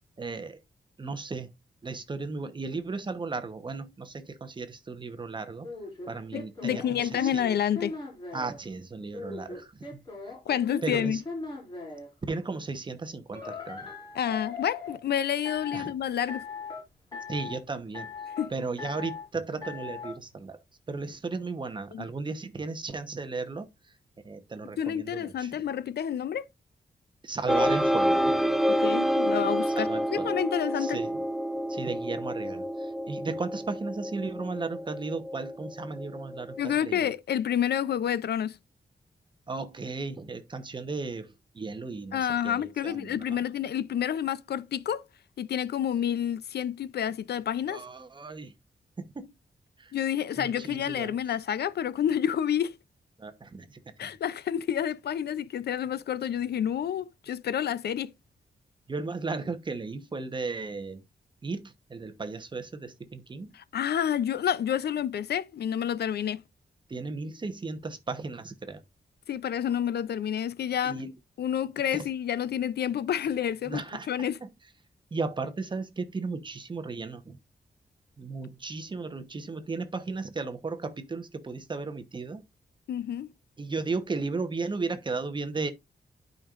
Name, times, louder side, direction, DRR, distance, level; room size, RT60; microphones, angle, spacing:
voice 1, 0.2-0.6 1.0-1.5 1.8-5.7 6.1-7.4 8.3-10.3 10.8-11.2 12.3-13.9 15.7-15.9 17.3-18.1 18.5-20.6 20.9-23.9 24.2-25.6 27.2-28.4 29.7-30.4 30.8-31.2 31.7-37.1 39.5-43.4 47.7-48.5 49.0-49.3 49.8-49.9 50.3-51.2 53.2-54.1 58.9-61.0 61.4-63.5 66.9-68.8 70.8-71.1 71.9-72.1 73.6-74.5 75.1-77.4 78.2-82.4 83.6-85.7, right 3 dB, 30° right, 1.0 m, -35 dB
sound 1, 5.6-8.6 9.1-12.1 13.3-15.0 15.4-15.9 16.3-16.8 17.1-17.6 17.9-18.5 18.8-19.2 19.6-20.1, left 4 dB, 25° left, 5.3 m, -39 dB
voice 2, 6.3-8.0 10.5-11.2 14.2-16.5 18.4-18.5 21.9-22.1 24.8-26.5 28.7-31.0 36.6-38.6 42.1-45.0 45.4-47.8 49.9-52.8 54.0-58.1 63.5-66.4 69.3-71.0 71.4-74.4 82.9-83.3, left 9 dB, 80° left, 0.5 m, -29 dB
sound 2, 27.5-36.7, equal, ahead, 0.4 m, -28 dB
12.0 x 5.3 x 2.5 m
wide cardioid pair, 170°, 17 cm